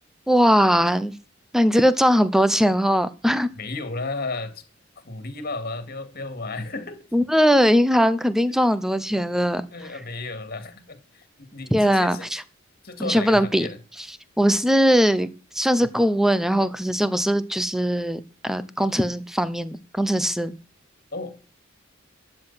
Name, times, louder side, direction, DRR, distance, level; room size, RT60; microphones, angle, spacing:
voice 1, 0.3-1.1 1.5-3.5 7.1-9.6 11.7-12.2 13.0-13.7 14.4-15.3 15.5-20.5, equal, ahead, 0.8 m, -20 dB
voice 2, 3.5-4.6 5.0-7.0 8.4-8.5 9.7-12.3 12.8-13.8 21.1-21.4, left 3 dB, 50° left, 2.3 m, -33 dB
12.5 x 7.9 x 5.8 m
head